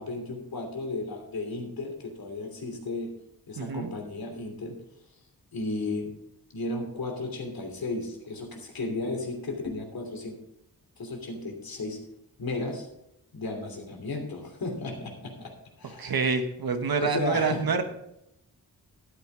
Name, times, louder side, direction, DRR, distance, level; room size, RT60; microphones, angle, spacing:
voice 1, 0.0-3.1 3.5-4.8 5.5-6.1 6.5-10.4 11.0-12.0 12.4-12.9 13.3-15.5 15.8-16.2 17.0-17.6, left 2 dB, 70° left, 2 dB, 3.0 m, -34 dB
voice 2, 3.6-3.9 16.0-17.8, right 5 dB, 70° right, 7 dB, 1.3 m, -27 dB
12.5 x 9.1 x 3.9 m, 0.81 s
cardioid pair, 70°, 37 cm